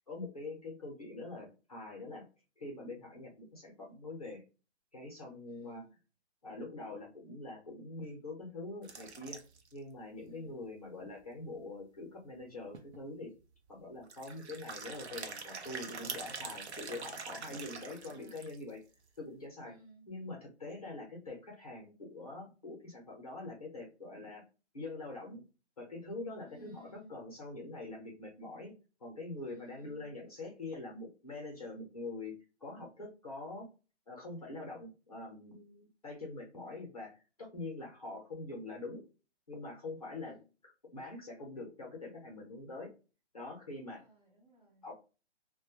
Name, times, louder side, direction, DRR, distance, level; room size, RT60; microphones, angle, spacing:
voice 1, 0.0-2.2 2.6-4.4 4.9-5.8 6.4-9.4 9.7-13.3 13.7-18.8 19.2-19.7 20.1-24.4 24.7-25.4 25.8-28.7 29.0-32.3 32.6-33.7 34.1-39.1 39.5-40.4 40.6-42.9 43.3-44.0 44.8-44.9, left 2 dB, 35° left, 0.6 m, -44 dB
voice 2, 5.5-6.0 10.3-10.7 17.5-18.5 19.6-20.1 26.4-27.1 29.5-30.1 36.7-36.8 40.2-40.5 43.7-44.9, left 1 dB, 35° right, 0.9 m, -59 dB
sound 1, 8.8-9.8 10.2-10.3 10.5-10.6 11.1-11.2 12.4-12.5 12.7-13.0 14.0-18.7, right 5 dB, 70° right, 0.6 m, -44 dB
2.2 x 2.1 x 2.8 m
hypercardioid pair, 180°, 34 cm